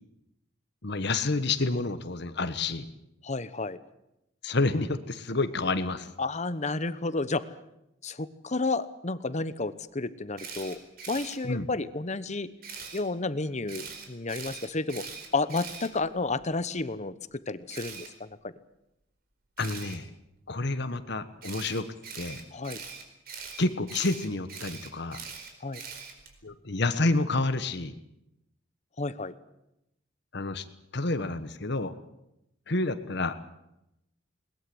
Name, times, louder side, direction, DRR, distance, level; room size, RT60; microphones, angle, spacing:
voice 1, 0.8-2.9 4.4-6.1 11.4-11.7 19.6-20.1 20.5-21.9 22.1-22.4 23.6-25.2 26.4-27.9 30.3-30.6 30.9-31.9 32.7-33.3, left 2 dB, 65° left, 11 dB, 1.4 m, -29 dB
voice 2, 3.2-3.8 6.2-7.5 8.0-10.8 11.1-12.5 12.9-15.1 15.3-17.1 17.5-18.5 22.5-22.8 25.6-25.8 29.0-29.3, left 3 dB, 40° left, 14 dB, 1.1 m, -31 dB
Camera, 10.4-11.3 12.6-13.0 13.7-16.4 17.7-18.1 19.6-20.0 21.4-26.4, right 6 dB, 55° right, 4.5 m, -42 dB
21.0 x 20.5 x 7.9 m, 0.85 s
head